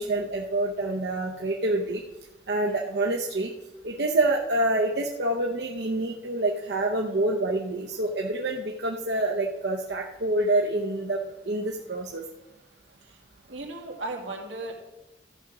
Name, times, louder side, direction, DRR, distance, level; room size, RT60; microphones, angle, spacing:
voice 1, 0.0-2.0 2.5-3.5 3.8-12.2, right 2 dB, 70° right, 0 dB, 0.8 m, -27 dB
voice 2, 13.5-14.7, right 2 dB, 90° right, 1 dB, 2.1 m, -36 dB
14.0 x 5.1 x 6.0 m, 1.0 s
head